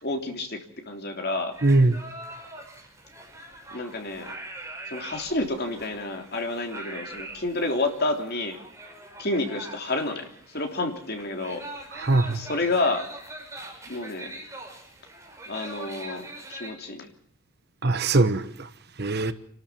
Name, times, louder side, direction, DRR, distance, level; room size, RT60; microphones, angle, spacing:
voice 1, 0.0-1.6 3.7-4.3 4.9-8.6 9.2-11.7 12.3-13.1 13.9-14.4 15.5-17.1, left 2 dB, 45° left, 3.3 m, -29 dB
sound 1, 1.5-16.7, right 2 dB, 15° right, 5.6 m, -43 dB
voice 2, 1.6-2.0 11.9-12.4 17.8-18.7 19.0-19.3, right 2 dB, 45° right, 1.2 m, -21 dB
29.0 x 13.0 x 7.2 m
head